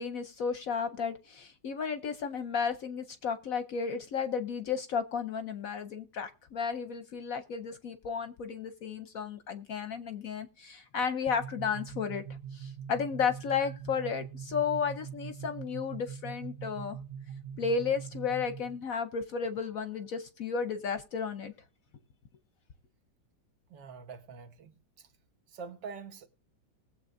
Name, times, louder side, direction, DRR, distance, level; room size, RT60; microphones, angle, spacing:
voice 1, 0.0-12.2 12.5-17.0 17.6-21.5, left 6 dB, 60° left, 0.9 m, -33 dB
sound 1, 11.3-18.8, right 7 dB, 15° right, 0.6 m, -43 dB
voice 2, 23.7-24.8 25.5-26.3, right 5 dB, 70° right, 1.8 m, -45 dB
20.0 x 7.5 x 2.5 m
omnidirectional pair, 2.0 m